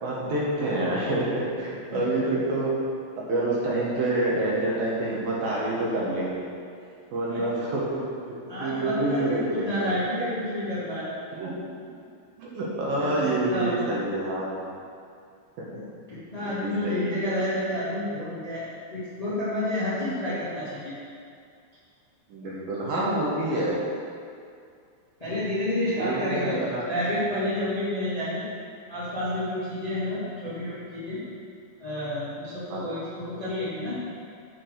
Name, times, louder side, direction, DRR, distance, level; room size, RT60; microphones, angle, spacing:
voice 1, 0.0-2.7 3.3-6.5 7.1-7.9 8.3-8.4 8.6-9.9 11.3-11.6 12.4-14.7 15.6-15.7 16.5-17.2 22.3-23.8 25.9-26.8 32.7-32.8, right 2 dB, 65° right, -5 dB, 2.5 m, -27 dB
voice 2, 1.9-2.2 7.3-7.4 8.5-11.1 13.0-13.8 15.7-15.8 16.1-21.0 22.9-23.2 25.2-28.5 28.9-31.2 31.8-34.0, left 1 dB, 85° left, -10 dB, 0.3 m, -30 dB
7.3 x 6.1 x 6.5 m, 2.4 s
omnidirectional pair, 5.2 m